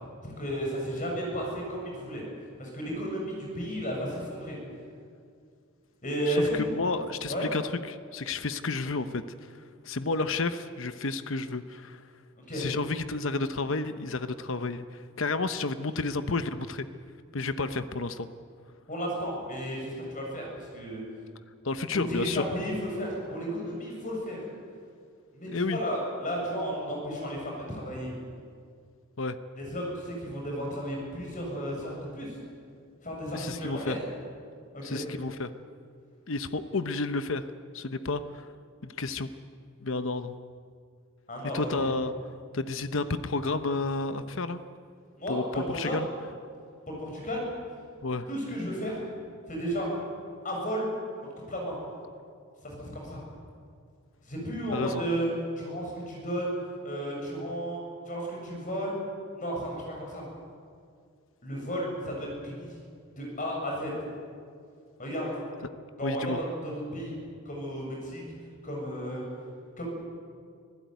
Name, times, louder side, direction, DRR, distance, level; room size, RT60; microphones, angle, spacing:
voice 1, 0.2-2.2 2.6-4.6 6.0-6.6 7.3-7.5 12.4-12.7 18.9-21.0 21.9-24.4 25.3-28.1 29.6-32.4 33.0-34.0 34.7-35.0 41.3-41.9 45.2-46.0 46.9-47.5 48.3-49.0 49.5-49.9 50.4-50.9 51.5-51.8 52.6-53.2 54.2-55.3 55.6-56.5 56.8-57.8 58.1-58.9 59.3-60.2 61.4-62.7 63.2-63.9 65.0-65.3 66.0-67.2 67.5-68.2 68.6-69.2 69.8-69.9, equal, 35° left, -1 dB, 7.3 m, -33 dB
voice 2, 6.3-9.5 9.8-12.0 12.5-16.8 17.3-18.3 21.6-22.4 25.5-25.8 29.2-29.4 33.3-34.0 34.8-35.5 36.3-37.4 37.7-38.5 38.8-39.3 39.8-40.4 41.5-42.1 42.5-44.6 45.3-46.1 48.0-48.3 54.7-55.0 66.0-66.4, left 3 dB, 60° left, 11 dB, 0.9 m, -31 dB
25.0 x 16.0 x 9.4 m, 2.2 s
head